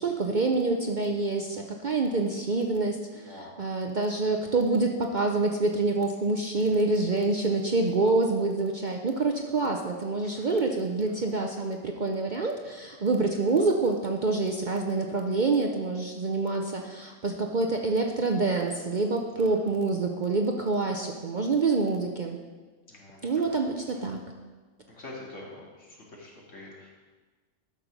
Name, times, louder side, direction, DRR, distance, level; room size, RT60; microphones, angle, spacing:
voice 1, 0.0-22.4 23.2-24.2, right 3 dB, 45° right, 2 dB, 0.7 m, -27 dB
voice 2, 3.3-3.6 6.6-6.8 10.2-10.6 11.0-11.2 19.3-19.6 22.9-23.6 23.9-24.1 25.0-26.9, left 2 dB, 65° left, -4 dB, 2.6 m, -46 dB
12.0 x 6.4 x 5.2 m, 1.4 s
omnidirectional pair, 1.4 m